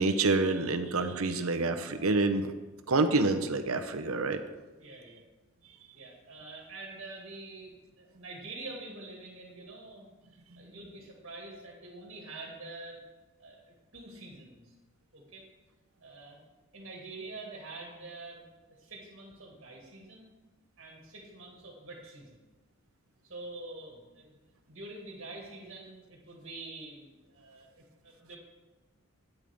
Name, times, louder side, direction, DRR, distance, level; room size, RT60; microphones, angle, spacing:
voice 1, 0.0-2.5 2.9-4.4 10.5-10.7, right 3 dB, 75° right, 7 dB, 0.9 m, -27 dB
voice 2, 4.8-5.2 5.9-13.0 13.4-14.8 15.1-15.5 16.0-16.4 16.7-18.5 18.8-20.3 20.8-22.5 23.2-24.3 24.7-28.4, right 2 dB, 55° right, -1 dB, 2.2 m, -46 dB
12.5 x 9.3 x 3.6 m, 1.2 s
head